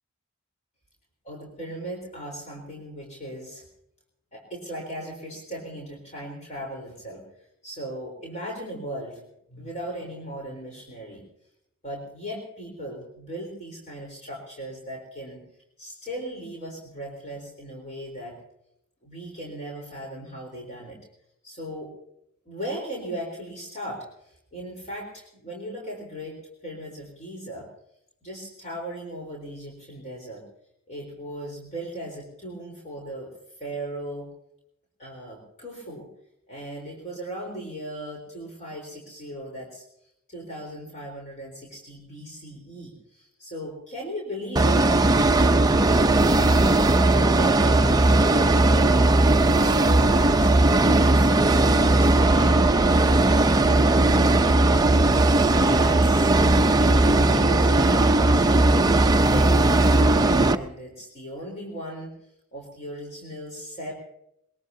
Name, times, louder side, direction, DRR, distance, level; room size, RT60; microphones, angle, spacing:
voice 1, 1.3-3.7 4.3-7.3 7.6-9.2 9.5-11.2 11.8-15.4 15.8-18.4 19.0-21.0 21.4-22.0 22.5-27.7 28.2-30.4 30.9-33.3 33.6-34.3 35.0-36.1 36.5-39.8 40.3-44.8 45.9-46.4 46.9-49.2 49.6-50.5 51.0-54.8 55.3-56.3 56.8-58.9 59.2-62.1 62.5-63.9, right 1 dB, 35° left, -1 dB, 4.1 m, -37 dB
sound 1, 44.6-60.6, right 2 dB, 20° right, 0.6 m, -18 dB
22.5 x 21.5 x 2.8 m, 0.78 s
head